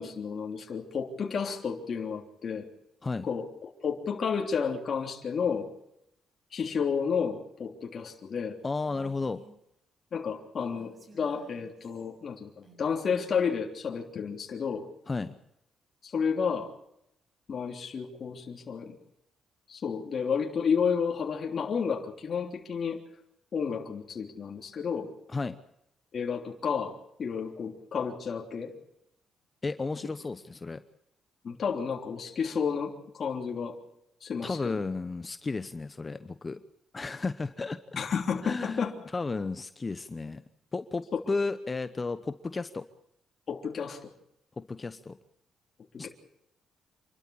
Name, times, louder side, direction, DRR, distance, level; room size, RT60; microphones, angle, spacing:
voice 1, 0.0-2.7 3.2-5.7 6.5-8.6 10.1-14.9 16.0-16.7 17.5-19.0 19.7-23.0 23.5-25.1 26.1-28.7 31.4-33.8 34.2-34.8 38.0-38.9 43.5-44.1 46.0-46.1, left 6 dB, 50° left, 2 dB, 3.3 m, -31 dB
voice 2, 8.6-9.4 15.1-15.4 25.3-25.6 29.6-30.8 34.4-36.6 36.9-38.0 38.4-40.4 40.7-42.8 44.6-45.1 46.0-46.1, left 3 dB, 25° left, 11 dB, 0.9 m, -33 dB
Female speech woman speaking, 8.8-9.5 10.6-12.1 12.6-13.5, right 2 dB, 35° right, 6.8 m, -56 dB
27.5 x 12.5 x 8.7 m, 0.79 s
cardioid pair, 90°, 0 cm